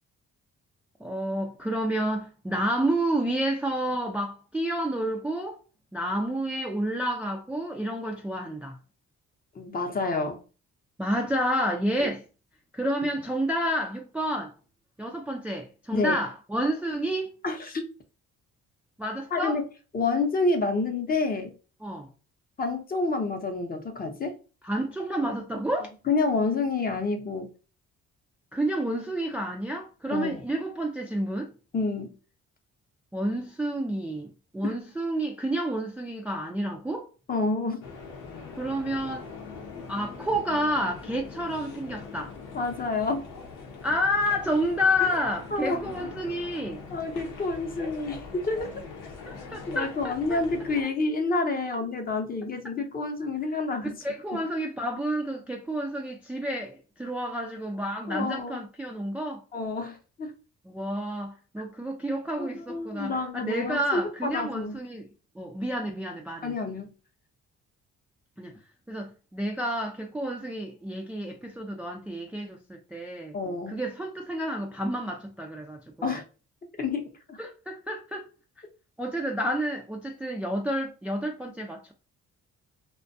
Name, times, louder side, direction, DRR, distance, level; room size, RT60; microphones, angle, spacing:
voice 1, 1.0-5.6 5.9-8.8 11.0-12.2 12.7-14.5 15.0-17.3 19.0-19.6 21.8-22.1 24.6-25.9 28.5-31.5 33.1-37.1 38.6-39.3 39.9-42.3 43.8-46.8 49.5-50.4 54.0-59.4 60.7-65.1 65.4-66.5 68.4-68.6 68.9-73.3 73.7-76.2 77.4-78.2 79.0-81.9, equal, 5° right, 0.3 m, -30 dB
voice 2, 9.6-10.4 12.0-12.1 15.9-16.2 17.4-17.8 19.3-19.6 19.9-21.5 22.6-24.4 26.1-27.5 30.1-30.4 31.7-32.1 34.6-34.8 37.3-37.8 42.5-43.2 45.0-45.1 45.5-45.8 46.9-48.7 49.7-54.0 54.3-54.4 58.1-58.6 59.5-60.3 62.4-64.8 66.4-66.9 73.3-73.8 76.0-76.2 76.8-77.4, left 3 dB, 30° left, 0.6 m, -28 dB
sound 1, 37.8-50.8, left 4 dB, 90° left, 0.8 m, -42 dB
2.5 x 2.2 x 2.5 m
cardioid pair, 90°, 30 cm